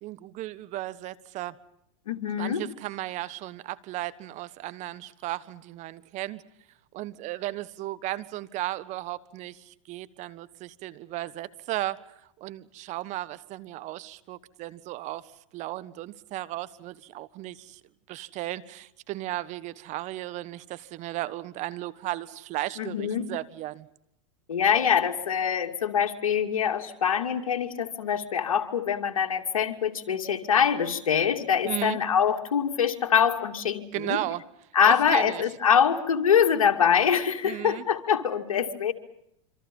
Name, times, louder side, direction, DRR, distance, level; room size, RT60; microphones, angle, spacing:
voice 1, 0.0-1.5 2.3-6.4 6.9-12.0 12.4-17.8 18.1-23.9 31.6-32.0 33.9-34.4 34.9-35.4 37.4-37.8, right 16 dB, 45° right, 16 dB, 1.4 m, -35 dB
voice 2, 2.1-2.6 22.8-23.3 24.5-34.2 34.7-38.9, left 7 dB, 90° left, 3 dB, 2.7 m, -24 dB
27.5 x 25.5 x 5.5 m, 0.77 s
hypercardioid pair, 115°, 17 cm